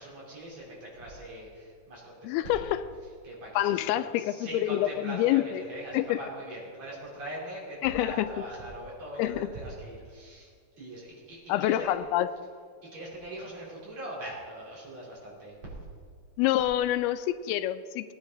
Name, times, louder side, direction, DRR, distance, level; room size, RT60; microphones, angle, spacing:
voice 1, 0.0-2.8 3.2-3.9 4.2-10.5 10.8-11.9 12.8-15.5, right 1 dB, 45° right, -6 dB, 4.7 m, -41 dB
voice 2, 2.2-2.8 3.6-5.6 5.9-6.2 7.8-8.3 9.2-9.5 11.5-12.3 16.4-18.1, left 13 dB, 90° left, 12 dB, 2.5 m, -27 dB
18.5 x 10.0 x 4.0 m, 2.1 s
omnidirectional pair, 4.4 m